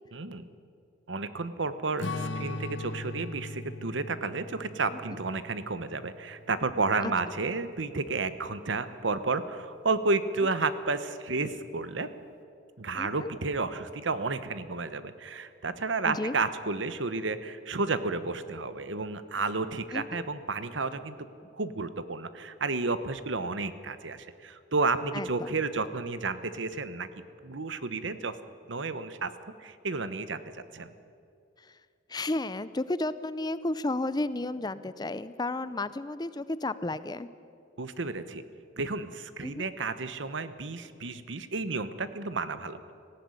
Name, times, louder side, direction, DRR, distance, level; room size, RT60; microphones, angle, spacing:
voice 1, 0.1-0.5 1.1-12.1 12.8-21.2 21.5-27.1 27.4-28.4 28.7-29.3 29.6-30.4 30.7-30.9 37.8-38.4 38.8-42.8, right 3 dB, 75° right, 12 dB, 1.1 m, -31 dB
Strum, 2.0-6.7, left 2 dB, 75° left, 1.1 m, -39 dB
voice 2, 12.9-13.3 16.0-16.3 19.9-20.2 25.1-25.5 31.6-31.7 32.1-37.3 39.4-39.7, left 2 dB, 20° left, 15 dB, 0.5 m, -32 dB
18.0 x 15.0 x 9.7 m, 2.5 s
head